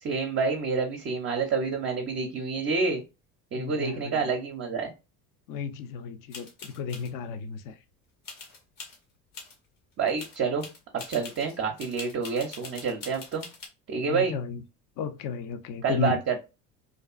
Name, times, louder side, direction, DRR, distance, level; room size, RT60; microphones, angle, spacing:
voice 1, 0.0-3.0 3.5-4.9 10.0-10.7 10.9-13.4 13.9-14.4 15.8-16.4, right 5 dB, 30° right, 0.5 m, -28 dB
voice 2, 3.6-4.3 5.5-7.8 14.1-14.6 15.0-16.2, left 6 dB, 45° left, 0.5 m, -33 dB
sound 1, 6.3-7.1 8.2-9.0 9.3-9.5 9.9-13.7, left 4 dB, 75° left, 1.0 m, -43 dB
2.5 x 2.3 x 2.3 m
hypercardioid pair, 65°, 45 cm